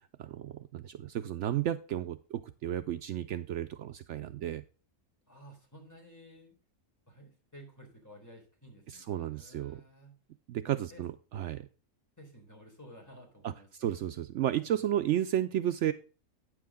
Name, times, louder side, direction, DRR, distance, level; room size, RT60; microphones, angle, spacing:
voice 1, 0.2-4.6 8.9-9.8 10.5-11.7 13.4-13.5 13.8-15.9, right 11 dB, 70° right, 10 dB, 0.9 m, -33 dB
voice 2, 5.3-6.5 7.1-10.1 10.7-11.0 12.2-13.7 14.5-14.8, equal, 15° left, -1 dB, 3.9 m, -54 dB
9.4 x 7.7 x 3.6 m, 0.36 s
omnidirectional pair, 1.3 m